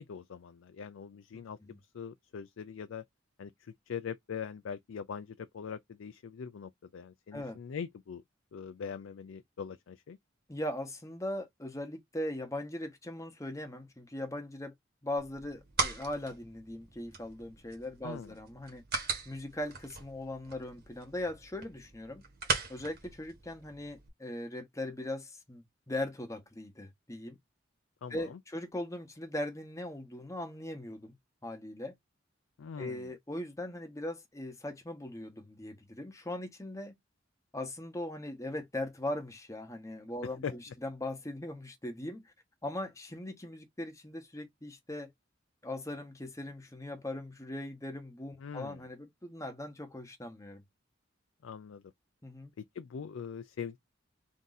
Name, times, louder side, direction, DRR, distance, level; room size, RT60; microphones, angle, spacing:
voice 1, 0.0-1.6 1.9-3.0 3.4-8.2 8.5-10.2 18.0-18.3 28.0-28.4 32.6-33.0 40.2-40.5 48.4-48.8 51.4-51.8 52.6-53.8, left 6 dB, 85° left, 0.4 m, -42 dB
voice 2, 10.5-14.7 15.0-22.2 22.7-27.4 28.1-31.1 31.4-31.9 32.8-36.9 37.5-42.3 42.6-45.1 45.6-50.6 52.2-52.5, left 1 dB, 15° left, 1.0 m, -40 dB
sound 1, 15.2-24.1, right 4 dB, 55° right, 1.3 m, -39 dB
3.7 x 2.6 x 4.0 m
head